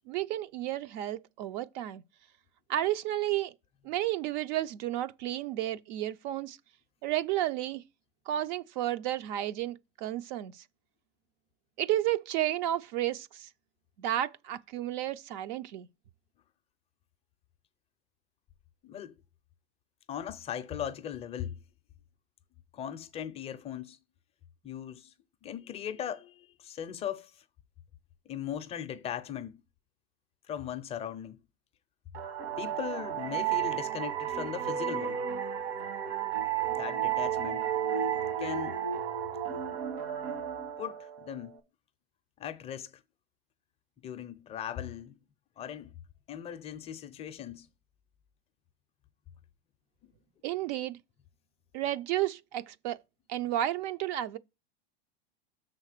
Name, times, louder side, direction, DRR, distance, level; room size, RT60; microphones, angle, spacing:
voice 1, 0.1-2.0 2.7-3.5 3.8-6.6 7.0-7.8 8.3-10.5 11.8-13.5 14.0-15.9 50.4-51.0 51.7-53.0 53.3-54.4, right 13 dB, 45° right, 0.5 m, -32 dB
voice 2, 18.8-19.1 20.1-21.6 22.7-24.0 24.6-25.1 25.4-27.3 28.3-29.6 30.5-31.4 32.6-35.2 36.7-37.6 38.4-38.8 40.8-41.6 42.4-42.9 44.0-45.2 45.6-45.9 46.3-47.7 50.0-50.1, left 9 dB, 20° left, 0.5 m, -38 dB
sound 1, 32.1-41.6, right 9 dB, 70° right, 1.9 m, -33 dB
6.5 x 4.1 x 6.5 m
supercardioid pair, 155°, 31 cm